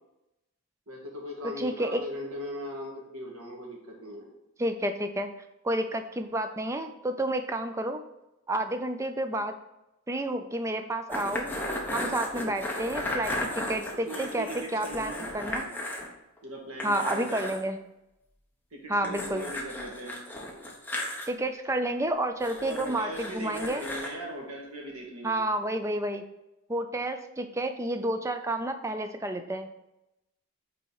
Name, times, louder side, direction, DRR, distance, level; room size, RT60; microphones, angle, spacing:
voice 1, 0.9-4.3 12.3-12.6 14.1-15.7 16.4-17.5 18.7-20.1 22.6-25.4, equal, 75° right, -1 dB, 1.8 m, -39 dB
voice 2, 1.6-2.0 4.6-5.3 5.6-8.0 8.5-9.5 10.1-11.5 11.9-15.7 16.8-17.8 18.9-19.5 21.3-23.8 25.2-26.2 26.7-29.7, right 1 dB, 15° right, 8 dB, 0.4 m, -30 dB
sound 1, 11.1-16.1 16.4-16.5 16.8-17.6 19.0-21.3 22.4-24.1, left 1 dB, 10° left, 0.8 m, -35 dB
5.5 x 4.2 x 4.7 m, 0.92 s
head